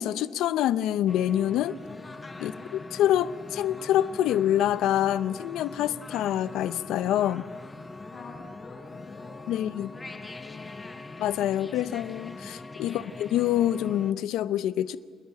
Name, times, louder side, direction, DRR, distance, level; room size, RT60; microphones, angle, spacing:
voice 1, 0.0-1.8 2.4-7.4 9.5-9.9 11.2-15.0, left 11 dB, 80° left, 15 dB, 0.5 m, -26 dB
sound 1, 1.1-14.1, left 3 dB, 15° left, 0.7 m, -42 dB
voice 2, 2.4-2.7 7.3-7.7 8.0-11.0 12.4-12.6 12.8-13.1, left 4 dB, 55° left, -8 dB, 7.2 m, -49 dB
27.5 x 10.5 x 9.0 m, 2.1 s
cardioid pair, 140°, 0 cm